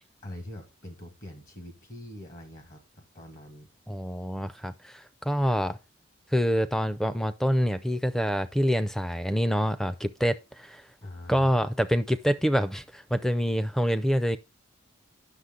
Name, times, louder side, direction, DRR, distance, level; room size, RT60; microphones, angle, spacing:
voice 1, 0.2-3.7 11.0-11.7, left 1 dB, 45° left, 1.5 m, -43 dB
voice 2, 3.9-5.8 6.3-10.8 11.3-14.4, equal, ahead, 0.4 m, -26 dB
9.7 x 6.4 x 3.8 m
head